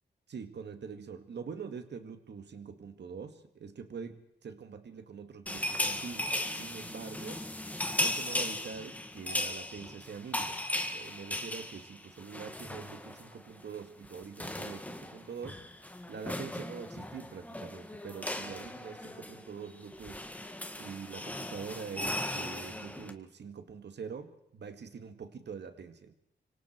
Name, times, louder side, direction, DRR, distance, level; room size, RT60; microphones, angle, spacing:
voice 1, 0.3-7.4 8.0-10.6 10.9-15.6 16.1-20.2 20.8-26.2, right 6 dB, 75° right, 8 dB, 2.2 m, -44 dB
sound 1, 5.5-13.3 13.6-13.8 14.0-23.1, left 1 dB, 10° left, 1.7 m, -37 dB
26.5 x 25.0 x 4.6 m, 0.78 s
wide cardioid pair, 170°, 18 cm